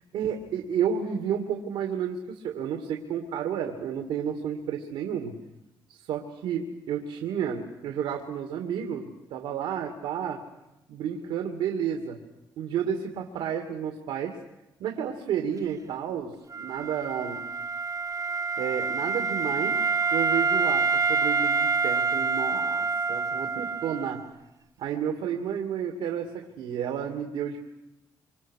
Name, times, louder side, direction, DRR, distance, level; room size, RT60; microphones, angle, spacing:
voice 1, 0.1-5.4 5.9-10.4 10.9-12.2 12.6-14.4 14.8-17.4 18.6-19.8 20.1-24.2 24.8-27.6, right 8 dB, 90° right, 3 dB, 2.5 m, -31 dB
Wind instrument woodwind instrument, 16.5-24.3, right 4 dB, 40° right, 1.3 m, -27 dB
26.5 x 26.0 x 6.6 m, 0.94 s
cardioid pair, 70°, 9 cm